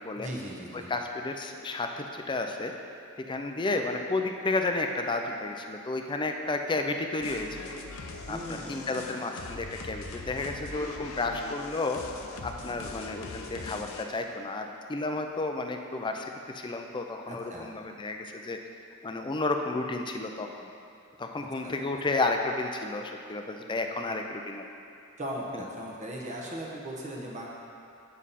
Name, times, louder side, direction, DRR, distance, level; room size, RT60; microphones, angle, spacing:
voice 1, 0.1-0.9 8.3-9.1 17.3-17.7 21.6-21.7 25.2-27.5, equal, 35° right, -3 dB, 1.1 m, -38 dB
voice 2, 0.7-2.7 3.3-7.7 8.3-12.0 12.4-18.6 19.0-20.7 21.2-24.6 25.5-25.6, left 2 dB, 20° left, 4 dB, 0.4 m, -32 dB
sound 1, 7.2-14.0, left 3 dB, 70° left, 0.6 m, -41 dB
7.3 x 7.2 x 4.2 m, 2.5 s
head